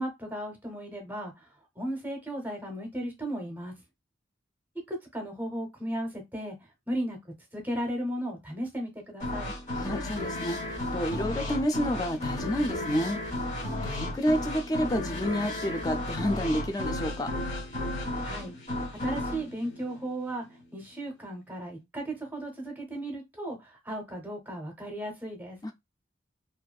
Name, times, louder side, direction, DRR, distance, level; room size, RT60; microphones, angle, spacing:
voice 1, 0.0-1.3 1.8-3.7 4.9-6.6 6.9-7.2 7.5-9.5 18.2-18.5 19.0-20.4 20.7-25.6, right 1 dB, 10° right, 0.7 m, -35 dB
sound 1, 9.2-20.7, left 1 dB, 40° left, 0.7 m, -34 dB
voice 2, 9.7-13.2 13.5-17.3 25.6-25.7, equal, 20° left, 0.3 m, -30 dB
2.5 x 2.3 x 2.2 m
head